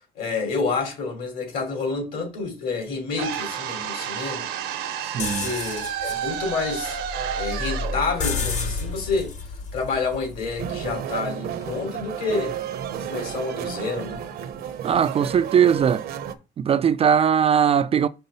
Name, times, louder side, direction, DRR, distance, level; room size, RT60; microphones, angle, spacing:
voice 1, 0.1-7.0 7.3-9.3 9.7-12.6 13.0-14.2, left 4 dB, 60° left, 3.2 m, -29 dB
sound 1, 3.2-9.3, right 9 dB, 90° right, 1.0 m, -31 dB
voice 2, 5.0-5.5 14.8-16.0 16.6-18.1, right 8 dB, 35° right, 0.4 m, -20 dB
sound 2, 5.2-11.0, left 4 dB, 45° left, 1.1 m, -31 dB
sound 3, 10.6-16.3, right 9 dB, 65° right, 0.8 m, -32 dB
5.5 x 3.7 x 5.4 m
cardioid pair, 110°, 17 cm